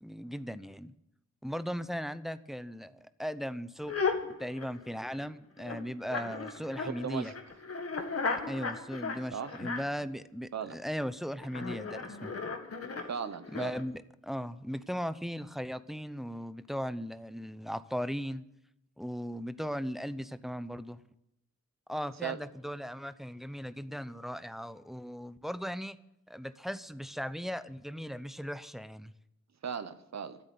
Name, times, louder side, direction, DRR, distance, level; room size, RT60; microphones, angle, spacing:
voice 1, 0.0-0.9 1.4-3.9 4.4-7.3 8.5-12.3 13.5-18.4 19.0-21.0 21.9-26.0 26.3-29.1, equal, ahead, 0.6 m, -38 dB
sound 1, 3.9-5.2 5.6-10.0 11.4-13.8, left 4 dB, 50° left, 1.9 m, -36 dB
voice 2, 6.9-7.3 9.3-9.6 10.5-10.8 13.1-13.8 22.2-22.4 29.6-30.4, right 7 dB, 65° right, 1.1 m, -37 dB
14.0 x 8.2 x 9.3 m
wide cardioid pair, 105°, 30 cm